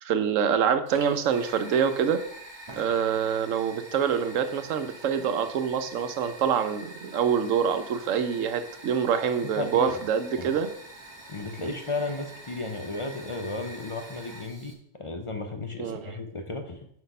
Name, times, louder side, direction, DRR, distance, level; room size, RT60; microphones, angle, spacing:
voice 1, 0.0-2.2 2.8-10.7 11.6-11.7 15.8-16.2, right 7 dB, 75° right, 10 dB, 1.0 m, -26 dB
Fire, 0.9-14.7, right 1 dB, 25° right, 0.8 m, -46 dB
voice 2, 9.6-10.0 10.4-10.5 11.3-16.8, left 3 dB, 35° left, 5 dB, 0.5 m, -34 dB
6.1 x 4.9 x 5.4 m, 0.69 s
omnidirectional pair, 1.3 m